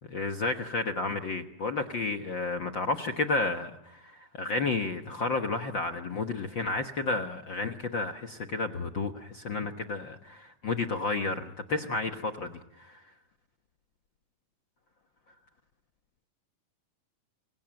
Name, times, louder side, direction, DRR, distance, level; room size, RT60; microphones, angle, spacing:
voice 1, 0.1-13.0, left 3 dB, 50° left, 6 dB, 1.5 m, -31 dB
29.0 x 24.0 x 7.7 m, 0.80 s
omnidirectional pair, 3.7 m